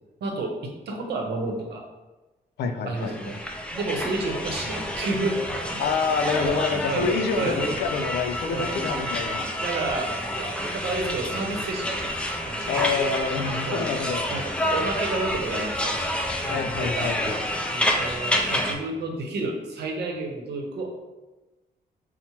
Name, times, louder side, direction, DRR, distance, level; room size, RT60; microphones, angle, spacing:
voice 1, 0.2-1.8 2.9-3.4 3.7-5.8 6.9-7.7 8.5-8.8 9.6-10.1 10.4-12.1 12.5-13.0 13.7-13.9 14.3-16.0 16.3-17.1 17.7-20.9, right 2 dB, 80° right, 1 dB, 0.8 m, -30 dB
voice 2, 2.6-3.1 5.8-9.4 12.7-14.2 16.5-17.4, left 5 dB, 85° left, 6 dB, 0.4 m, -27 dB
sound 1, 2.9-18.7, equal, 5° left, 0.4 m, -29 dB
5.7 x 2.1 x 2.9 m, 1.1 s
cardioid pair, 135°, 17 cm